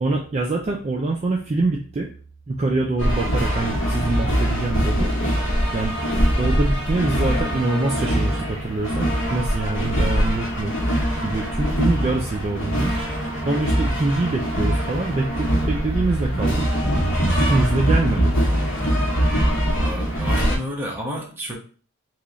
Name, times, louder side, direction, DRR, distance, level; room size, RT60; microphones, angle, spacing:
voice 1, 0.0-2.1 2.5-5.1 5.7-6.0 6.4-10.7 11.2-12.9 13.5-16.7 17.4-18.3, right 2 dB, 30° right, 0 dB, 0.3 m, -24 dB
sound 1, 3.0-20.6, equal, 65° left, 1.0 m, -22 dB
voice 2, 19.7-21.6, equal, 10° right, -3 dB, 0.8 m, -31 dB
3.1 x 2.3 x 3.8 m, 0.41 s
head